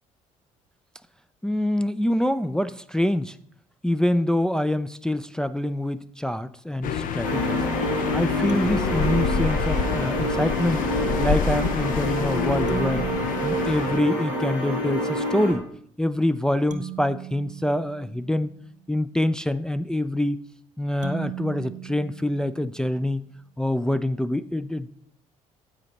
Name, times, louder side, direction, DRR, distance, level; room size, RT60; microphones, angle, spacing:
voice 1, 1.4-3.4 3.8-7.6 8.1-10.8 11.2-13.1 13.4-15.7 16.0-18.5 18.9-20.4 20.8-23.2 23.6-24.9, left 1 dB, 5° left, 11 dB, 0.4 m, -25 dB
sound 1, 6.8-14.0, left 7 dB, 50° left, 0.6 m, -28 dB
sound 2, 7.2-15.5, equal, 70° left, 1.8 m, -27 dB
sound 3, 8.5-10.2 12.7-14.7 16.7-18.8 21.0-23.1, right 9 dB, 45° right, 0.9 m, -38 dB
9.8 x 8.4 x 2.9 m, 0.64 s
figure-of-eight pair, 50°, 18 cm